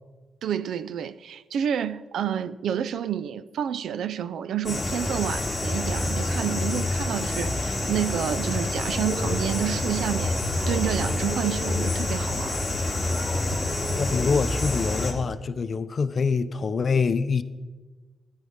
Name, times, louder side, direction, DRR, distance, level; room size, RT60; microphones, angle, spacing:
voice 1, 0.4-10.4 10.7-12.6, right 9 dB, 85° right, 0.4 m, -29 dB
sound 1, 4.6-15.1, left 1 dB, 10° left, 2.5 m, -27 dB
voice 2, 14.0-17.4, left 5 dB, 45° left, 0.5 m, -25 dB
13.5 x 10.5 x 3.6 m
cardioid pair, 120°, 0 cm